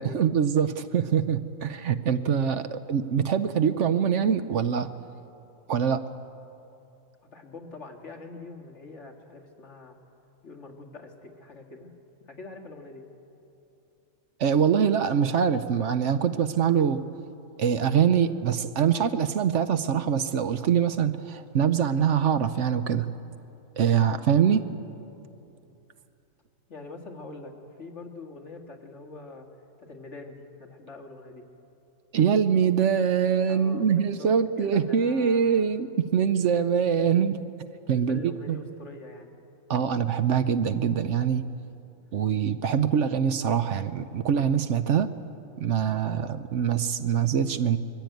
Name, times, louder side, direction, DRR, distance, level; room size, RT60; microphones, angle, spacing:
voice 1, 0.0-4.9 5.7-6.0 14.4-17.0 17.6-23.1 23.8-24.6 32.1-37.4 37.9-38.6 39.7-41.5 42.1-45.1 45.6-47.8, right 7 dB, 65° right, 11 dB, 1.0 m, -24 dB
voice 2, 7.2-10.0 10.4-11.9 12.3-13.0 26.7-27.5 27.8-29.5 29.8-31.4 33.5-34.3 34.6-35.8 36.7-37.1 37.9-39.3, left 3 dB, 60° left, 2 dB, 2.1 m, -44 dB
22.5 x 15.0 x 9.2 m, 2.8 s
omnidirectional pair, 1.4 m